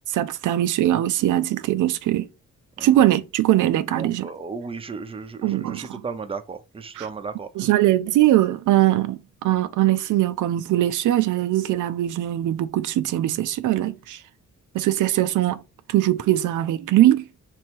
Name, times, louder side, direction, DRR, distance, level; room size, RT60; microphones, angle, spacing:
voice 1, 0.1-2.3 2.8-4.3 5.4-6.0 6.9-7.1 7.6-14.2 14.7-15.6 15.9-17.3, right 14 dB, 85° right, 0.5 m, -21 dB
voice 2, 3.9-7.7, right 5 dB, 20° right, 0.5 m, -35 dB
3.4 x 3.1 x 4.4 m
wide cardioid pair, 130°, 30 cm